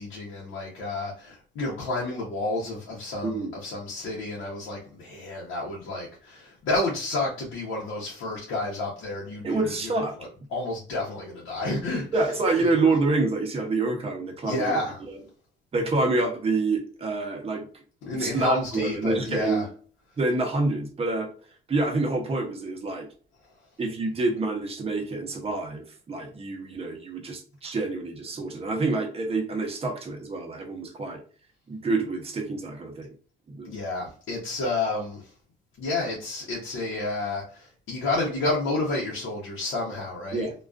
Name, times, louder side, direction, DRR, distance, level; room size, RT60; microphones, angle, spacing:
voice 1, 0.0-9.9 10.5-12.1 14.4-15.0 18.0-19.7 33.6-35.3 35.8-40.5, left 2 dB, 80° left, 0.8 m, -30 dB
voice 2, 9.4-10.1 12.1-14.8 15.1-15.2 15.7-17.8 18.1-19.7 20.2-21.3 21.7-23.1 23.8-31.2 31.7-33.1 33.5-33.7 40.3-40.5, right 3 dB, 30° right, 0.7 m, -27 dB
2.3 x 2.3 x 2.3 m
cardioid pair, 90°, 20 cm